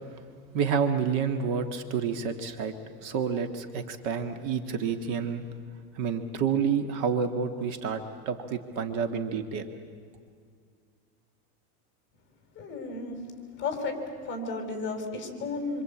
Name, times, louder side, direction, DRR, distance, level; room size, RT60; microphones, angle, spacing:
voice 1, 0.5-2.7 3.0-5.4 5.9-9.7, right 6 dB, 45° right, 7 dB, 1.7 m, -29 dB
voice 2, 12.6-13.2 13.6-15.8, left 3 dB, 25° left, 4 dB, 5.3 m, -33 dB
27.0 x 25.5 x 8.6 m, 2.1 s
supercardioid pair, 160°, 45 cm